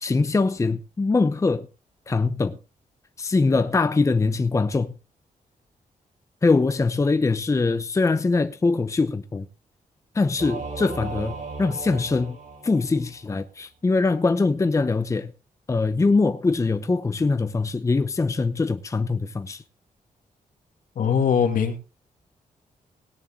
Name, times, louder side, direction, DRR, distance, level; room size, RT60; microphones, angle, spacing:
voice 1, 0.0-1.7 2.1-2.6 3.2-4.9 6.4-9.5 10.1-12.4 12.6-15.3 15.7-19.6, left 3 dB, 20° left, 0.8 m, -22 dB
Singing / Musical instrument, 10.4-13.3, right 4 dB, 60° right, 7.3 m, -36 dB
voice 2, 21.0-21.8, left 7 dB, 75° left, 2.5 m, -21 dB
18.0 x 10.0 x 3.8 m
wide cardioid pair, 140°, 14 cm